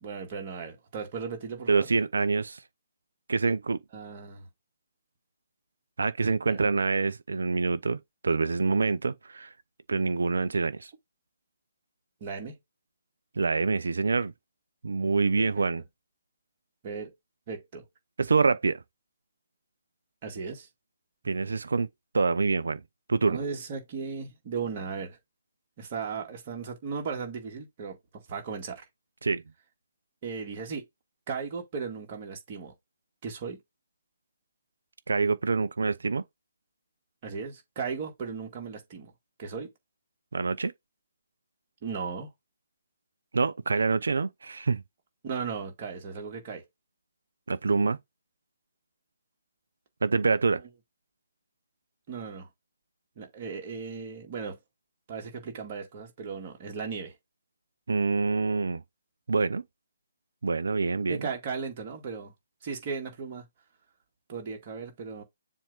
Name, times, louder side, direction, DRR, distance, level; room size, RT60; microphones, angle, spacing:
voice 1, 0.0-1.9 3.9-4.5 6.4-6.6 12.2-12.6 15.4-15.6 16.8-17.1 17.5-17.9 20.2-20.7 23.2-25.2 25.8-28.0 28.3-28.8 30.2-30.8 31.3-32.7 33.2-33.6 37.2-39.1 39.4-39.7 41.8-42.3 45.2-46.6 52.1-52.5 53.2-54.6 55.1-57.1 61.1-62.3 62.6-63.4 64.3-65.2, right 5 dB, 35° right, 2.2 m, -36 dB
voice 2, 1.7-2.6 3.3-3.8 6.0-9.5 9.9-10.9 13.4-14.3 14.8-15.8 18.2-18.8 21.2-21.9 22.1-22.8 23.1-23.4 29.2-29.4 35.1-36.2 40.3-40.7 43.3-44.8 47.5-48.0 50.0-50.6 57.9-58.8 59.3-59.6 60.4-61.2, right 4 dB, 65° right, 0.6 m, -26 dB
7.2 x 2.7 x 4.9 m
figure-of-eight pair, 140°, 0 cm